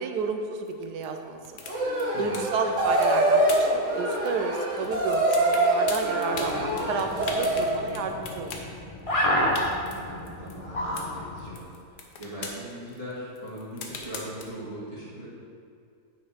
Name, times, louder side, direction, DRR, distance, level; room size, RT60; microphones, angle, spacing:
voice 1, 0.0-1.6 2.2-8.5, right 4 dB, 80° right, 5 dB, 1.3 m, -31 dB
sound 1, 0.7-4.5 4.7-4.9 5.1-8.7 9.1-9.2 9.4-10.6 10.9-11.1 11.4-14.4, left 4 dB, 80° left, 1.5 m, -39 dB
sound 2, 1.7-7.8, right 1 dB, 50° right, 1.5 m, -25 dB
voice 2, 2.1-2.5 9.6-11.6 12.2-15.3, right 1 dB, 20° right, -10 dB, 1.9 m, -40 dB
sound 3, 6.3-11.6, equal, 25° left, 0.9 m, -30 dB
9.3 x 5.4 x 5.0 m, 2.4 s
omnidirectional pair, 1.7 m